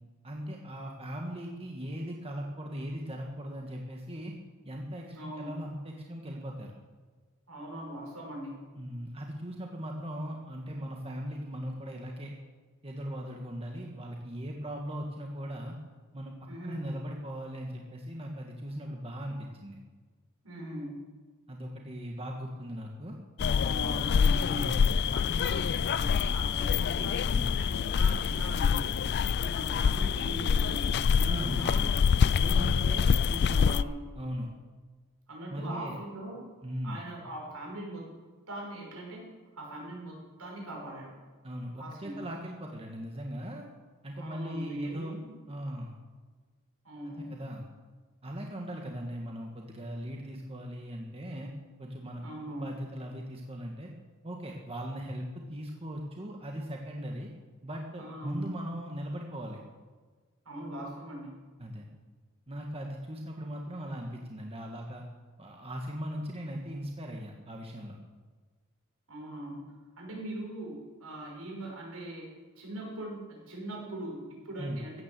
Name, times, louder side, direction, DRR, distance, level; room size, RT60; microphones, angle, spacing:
voice 1, 0.2-4.3 4.6-6.7 8.7-12.3 12.8-15.7 16.1-16.4 16.6-19.8 21.5-23.2 24.5-24.8 27.3-27.5 31.2-31.9 34.1-34.5 35.5-36.0 36.6-37.0 41.4-43.6 44.0-45.2 45.5-45.9 47.1-47.6 48.2-51.5 51.8-53.9 54.2-57.3 57.6-59.6 61.6-61.9 62.5-65.0 65.4-68.0 74.6-74.8, equal, 25° right, 1 dB, 1.6 m, -39 dB
voice 2, 5.1-5.7 7.5-8.6 16.5-16.8 20.4-21.0 23.4-24.7 25.1-27.1 27.6-29.0 29.4-31.9 32.3-34.0 35.3-36.4 36.8-38.1 38.5-39.2 39.5-41.1 41.8-42.2 44.1-45.3 46.8-47.4 52.2-52.7 58.0-58.5 60.4-61.3 69.1-69.7 70.0-72.3 72.6-75.0, right 1 dB, 75° right, -1 dB, 6.3 m, -41 dB
sound 1, 23.4-33.8, left 6 dB, 50° left, 0.3 m, -26 dB
16.0 x 9.8 x 7.6 m, 1.4 s
head